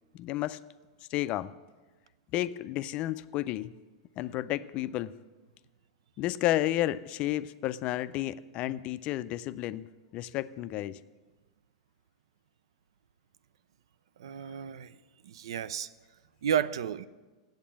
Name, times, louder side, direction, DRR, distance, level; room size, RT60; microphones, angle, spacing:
voice 1, 0.1-0.6 1.1-1.5 2.3-3.7 4.2-5.1 6.2-9.9 10.1-11.0, left 14 dB, 40° left, 0.4 m, -31 dB
voice 2, 14.2-14.9 15.2-15.9 16.4-17.1, right 9 dB, 75° right, 0.4 m, -31 dB
8.5 x 8.0 x 7.3 m
hypercardioid pair, 110°, 3 cm